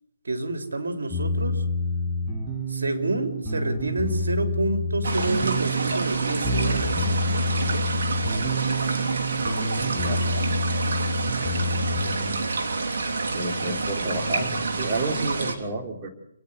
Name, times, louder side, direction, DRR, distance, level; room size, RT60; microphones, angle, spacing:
voice 1, 0.2-1.6 2.7-7.0 9.4-10.4 11.0-12.0, right 2 dB, 80° right, 5 dB, 3.6 m, -29 dB
sound 1, 1.1-12.5, left 1 dB, 10° right, 6.5 m, -28 dB
sound 2, 5.0-15.5, right 3 dB, 60° right, 3.3 m, -28 dB
voice 2, 9.9-10.2 13.3-16.1, right 2 dB, 25° right, 2 dB, 3.5 m, -30 dB
28.5 x 9.9 x 9.5 m, 0.79 s
hypercardioid pair, 145°, 0 cm